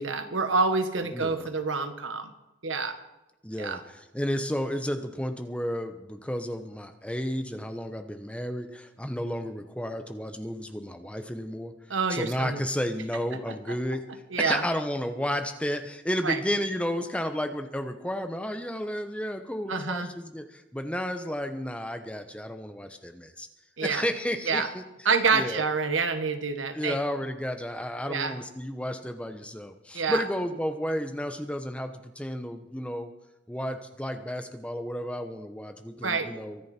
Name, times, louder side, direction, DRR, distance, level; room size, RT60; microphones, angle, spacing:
voice 1, 0.0-2.3 2.6-3.0 3.6-3.8 11.9-12.6 14.3-14.6 16.2-16.4 19.7-20.1 23.8-24.0 24.5-24.7 25.0-27.0 28.1-28.3 29.9-30.2 36.0-36.3, right 4 dB, 85° right, 8 dB, 1.6 m, -27 dB
voice 2, 1.1-1.5 3.4-11.7 12.1-14.1 14.4-23.5 23.8-25.7 26.7-33.1 33.5-36.6, equal, 5° left, 7 dB, 1.0 m, -32 dB
23.5 x 10.5 x 4.4 m, 0.98 s
head